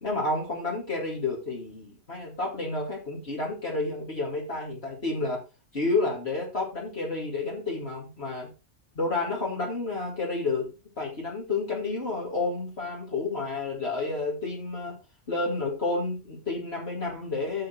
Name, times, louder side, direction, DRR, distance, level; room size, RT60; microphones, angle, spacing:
voice 1, 0.0-5.4 5.7-8.5 9.0-10.7 11.0-15.0 15.3-17.7, left 3 dB, 55° left, -2 dB, 2.6 m, -30 dB
9.4 x 6.4 x 4.4 m, 0.30 s
omnidirectional pair, 1.3 m